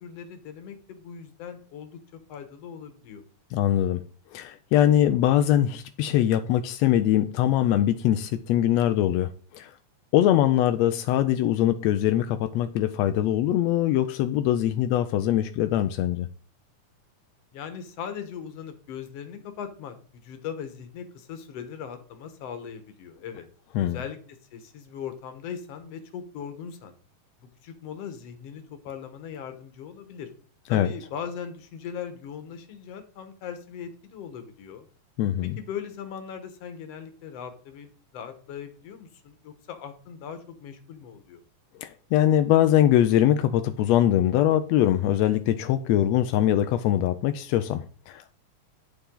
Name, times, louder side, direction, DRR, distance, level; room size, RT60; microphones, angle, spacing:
voice 1, 0.0-2.0 2.3-3.2 17.5-23.5 23.8-24.2 24.5-26.9 27.4-30.3 30.7-34.9 35.4-41.4, left 7 dB, 60° left, 2.1 m, -39 dB
voice 2, 3.5-4.0 4.3-9.7 10.1-16.3 23.7-24.0 30.7-30.9 35.2-35.6 41.8-48.3, left 12 dB, 80° left, 1.5 m, -22 dB
9.1 x 7.1 x 3.8 m
omnidirectional pair, 3.6 m